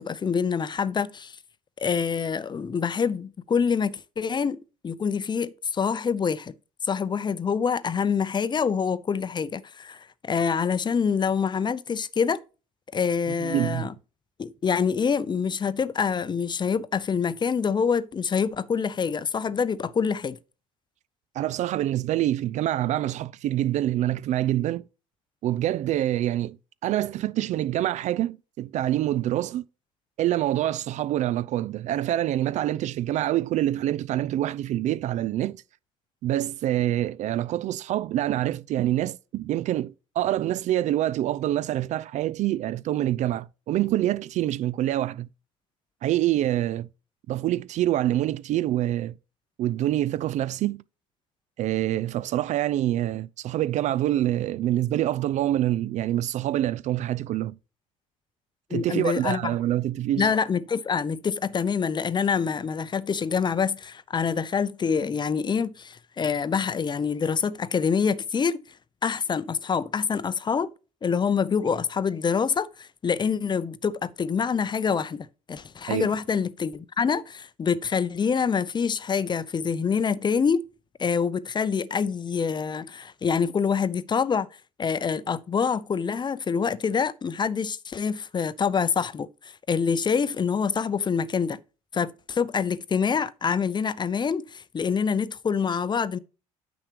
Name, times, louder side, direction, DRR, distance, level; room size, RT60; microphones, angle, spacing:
voice 1, 0.0-1.4 1.8-6.5 6.8-12.4 12.9-13.9 14.4-20.4 58.7-59.5 60.2-68.6 69.0-70.7 71.0-80.6 81.0-84.5 84.8-91.6 91.9-96.2, left 6 dB, 25° left, 0.6 m, -26 dB
voice 2, 13.4-13.9 21.4-24.8 25.4-26.6 26.8-29.6 30.2-35.6 36.2-45.3 46.0-46.9 47.3-49.1 49.6-50.8 51.6-57.6 58.7-60.3 75.9-76.1, right 13 dB, 45° right, 0.4 m, -26 dB
9.8 x 7.0 x 3.0 m
figure-of-eight pair, 55°, 17 cm